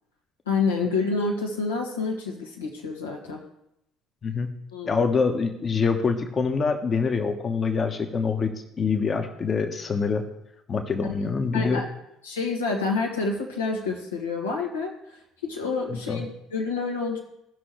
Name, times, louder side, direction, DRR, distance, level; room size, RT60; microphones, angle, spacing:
voice 1, 0.5-3.4 4.7-5.0 11.0-11.1 11.5-11.9 12.2-14.9 15.4-17.2, left 4 dB, 80° left, 0 dB, 1.6 m, -28 dB
voice 2, 4.8-8.5 8.8-10.2 10.7-11.8 15.9-16.3, left 5 dB, 35° left, 5 dB, 1.2 m, -25 dB
17.0 x 6.1 x 3.2 m, 0.81 s
figure-of-eight pair, 55°, 0 cm